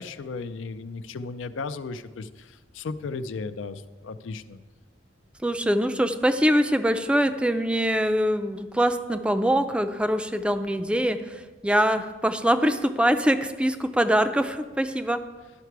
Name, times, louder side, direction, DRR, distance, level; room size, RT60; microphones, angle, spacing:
voice 1, 0.0-4.6, left 4 dB, 90° left, 12 dB, 0.4 m, -35 dB
voice 2, 5.4-15.2, equal, 5° right, 9 dB, 0.4 m, -23 dB
11.5 x 5.8 x 4.6 m, 1.3 s
head